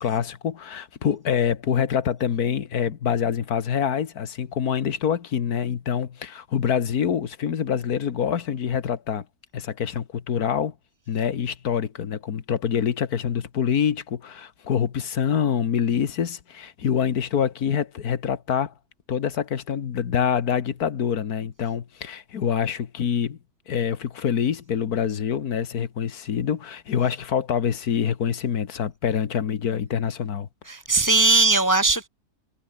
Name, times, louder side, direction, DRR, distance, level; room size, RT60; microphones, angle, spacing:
voice 1, 0.0-9.2 9.5-10.7 11.1-18.7 19.1-23.4 23.7-30.5, left 8 dB, 70° left, 1.8 m, -25 dB
voice 2, 30.7-32.1, right 3 dB, 20° left, 0.6 m, -19 dB
omnidirectional pair, 1.7 m